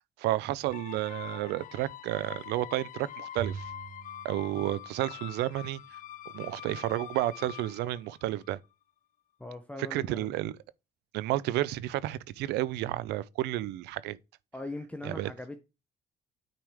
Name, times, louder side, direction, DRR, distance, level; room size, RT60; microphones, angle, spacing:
voice 1, 0.2-3.7 4.2-5.8 6.3-8.6 9.9-10.6 11.1-14.2 15.0-15.3, right 15 dB, 85° right, 0.6 m, -31 dB
sound 1, 0.7-8.7, left 12 dB, 50° left, 0.5 m, -45 dB
Bowed string instrument, 3.4-5.8, right 7 dB, 60° right, 0.9 m, -43 dB
voice 2, 9.4-10.3 14.5-15.6, left 2 dB, 10° left, 0.9 m, -40 dB
9.1 x 4.8 x 3.5 m
cardioid pair, 110°, 17 cm